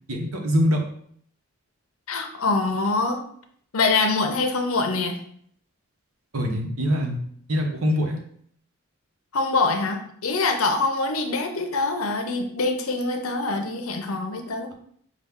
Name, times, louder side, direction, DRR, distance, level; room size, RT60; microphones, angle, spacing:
voice 1, 0.1-0.8 6.3-7.2 7.5-8.2, equal, 75° right, 2 dB, 0.9 m, -23 dB
voice 2, 2.1-3.2 3.7-5.2 9.3-14.7, left 3 dB, 75° left, 5 dB, 0.7 m, -24 dB
5.8 x 2.4 x 3.6 m, 0.63 s
head